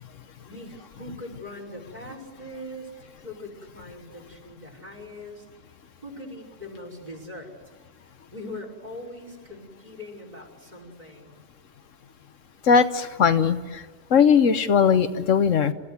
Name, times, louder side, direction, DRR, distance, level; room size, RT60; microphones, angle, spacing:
voice 1, 0.4-5.5 6.0-7.5 8.3-11.4, left 1 dB, 35° right, 2 dB, 5.6 m, -41 dB
voice 2, 12.7-13.8 14.1-15.7, left 6 dB, 80° left, 10 dB, 1.4 m, -19 dB
28.5 x 15.5 x 9.6 m, 1.4 s
omnidirectional pair, 1.3 m